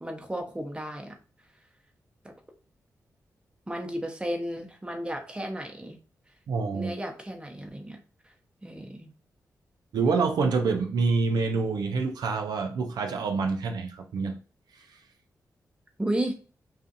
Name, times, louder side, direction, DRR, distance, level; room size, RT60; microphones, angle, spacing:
voice 1, 0.0-1.2 3.7-6.0 6.7-8.0 8.6-9.1 16.0-16.3, right 1 dB, 15° right, 0.7 m, -33 dB
voice 2, 6.5-6.9 9.9-14.4, right 4 dB, 80° right, 0.4 m, -26 dB
2.5 x 2.4 x 2.6 m
cardioid pair, 50°, 7 cm